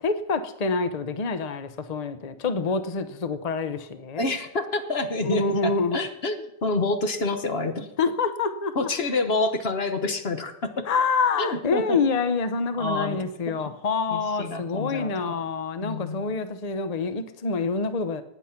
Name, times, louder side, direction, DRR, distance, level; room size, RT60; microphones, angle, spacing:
voice 1, 0.0-4.3 5.2-6.0 8.0-8.9 10.9-18.2, left 4 dB, 55° left, 11 dB, 0.4 m, -26 dB
voice 2, 4.2-7.9 8.7-10.9 11.4-12.0 12.8-13.2 13.5-13.6 14.1-15.3 15.8-16.3, left 3 dB, 40° left, 8 dB, 1.1 m, -28 dB
19.0 x 8.2 x 5.8 m, 0.81 s
omnidirectional pair, 1.9 m